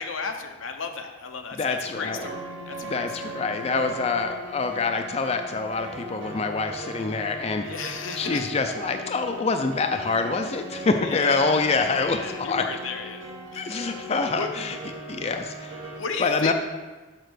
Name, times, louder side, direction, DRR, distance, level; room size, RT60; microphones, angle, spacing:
voice 1, 0.0-3.3 7.6-8.5 11.0-13.2 13.5-14.0 14.3-14.5 14.9-15.0 16.0-16.5, left 5 dB, 90° left, 5 dB, 0.9 m, -34 dB
voice 2, 1.5-2.3 2.8-7.6 8.2-12.7 13.5-14.8 15.1-15.9 16.2-16.5, left 4 dB, 30° left, 6 dB, 0.4 m, -26 dB
sound 1, 1.9-16.0, right 1 dB, 65° right, 1.3 m, -38 dB
6.6 x 5.7 x 6.3 m, 1.3 s
head